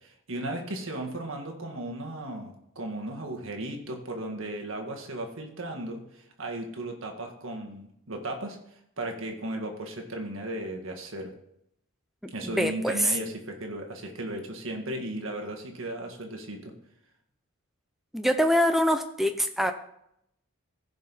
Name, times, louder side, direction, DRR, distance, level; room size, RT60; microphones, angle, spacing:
voice 1, 0.0-8.6 9.0-11.3 12.3-16.7, right 1 dB, 65° right, 2 dB, 1.7 m, -36 dB
voice 2, 12.2-13.2 18.1-19.7, equal, ahead, 6 dB, 0.6 m, -24 dB
15.5 x 5.3 x 4.1 m, 0.76 s
head